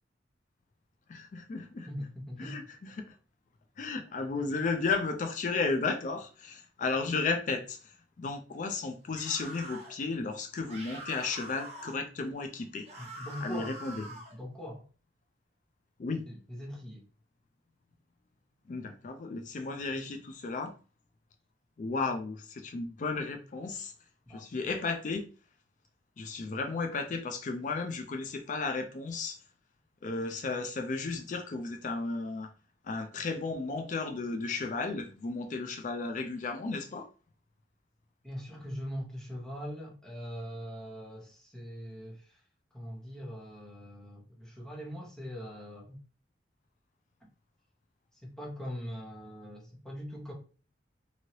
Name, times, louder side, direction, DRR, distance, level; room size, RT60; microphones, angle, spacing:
voice 1, 1.1-1.9 2.4-3.2 3.8-12.9 13.4-14.0 16.0-16.3 18.7-20.7 21.8-23.9 24.3-25.3 26.2-29.4 30.0-32.5 32.8-37.1, left 4 dB, 40° left, 0.4 m, -34 dB
voice 2, 1.9-2.6 13.0-13.8 14.1-14.8 16.3-17.0 24.3-24.5 38.2-42.4 42.7-46.0 48.2-50.3, equal, 5° left, 1.0 m, -41 dB
sound 1, 9.1-9.9 10.7-12.0 12.9-14.4, right 1 dB, 35° right, 1.0 m, -45 dB
3.0 x 2.8 x 2.8 m
head